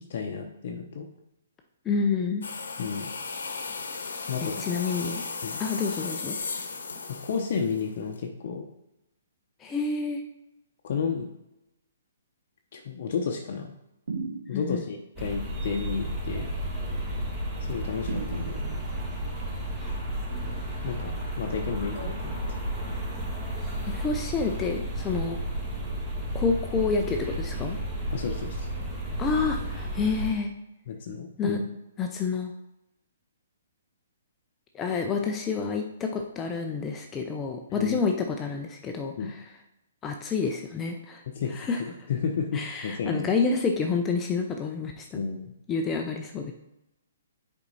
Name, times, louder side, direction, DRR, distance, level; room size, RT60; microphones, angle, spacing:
voice 1, 0.1-1.1 2.8-3.1 4.3-4.7 5.4-5.6 7.1-8.7 10.8-11.3 12.7-13.7 14.5-16.5 17.6-18.8 20.8-22.6 28.1-28.7 30.9-31.7 37.7-38.0 39.2-39.3 41.3-43.3 45.1-45.5, left 6 dB, 55° left, 1 dB, 0.8 m, -32 dB
voice 2, 1.9-2.4 4.4-5.2 5.6-6.4 9.6-10.2 14.5-14.8 23.9-25.4 26.3-27.8 29.2-30.5 31.4-31.6 32.0-32.5 34.7-39.4 40.0-41.2 41.5-41.8 42.5-45.2 45.7-46.5, left 4 dB, 20° left, 3 dB, 0.6 m, -28 dB
sound 1, 2.4-8.2, left 4 dB, 80° left, 1.0 m, -36 dB
Beat loop Fx, 14.1-14.9 18.1-19.0, right 4 dB, 75° right, 1.3 m, -36 dB
sound 2, 15.2-30.3, right 1 dB, 20° right, 1.7 m, -32 dB
6.9 x 4.5 x 4.1 m, 0.90 s
hypercardioid pair, 140°, 0 cm